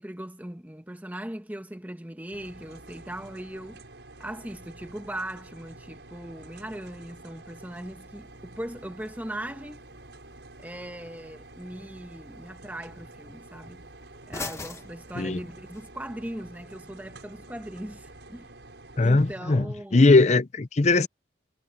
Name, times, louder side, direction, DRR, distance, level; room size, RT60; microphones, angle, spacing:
voice 1, 0.0-3.8 4.2-9.8 10.6-13.8 14.3-18.5 19.0-20.1, right 1 dB, 10° right, 1.3 m, -39 dB
sound 1, 2.3-19.4, right 2 dB, 85° right, 6.7 m, -48 dB
sound 2, 7.9-15.9, left 3 dB, 15° left, 1.5 m, -46 dB
voice 2, 19.0-19.7 19.9-21.1, left 3 dB, 40° left, 0.6 m, -19 dB
head